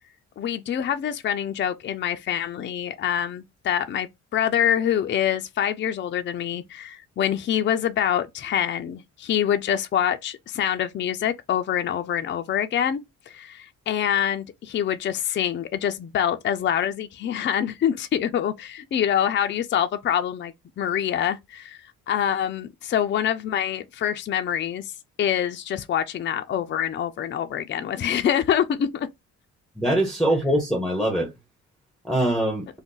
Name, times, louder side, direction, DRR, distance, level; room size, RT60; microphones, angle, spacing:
voice 1, 0.4-21.8 22.1-24.9 25.2-29.1, left 9 dB, 40° left, 0.4 m, -25 dB
voice 2, 29.8-31.3 32.0-32.7, right 1 dB, ahead, 0.6 m, -23 dB
2.5 x 2.1 x 3.7 m
cardioid pair, 90°, 30 cm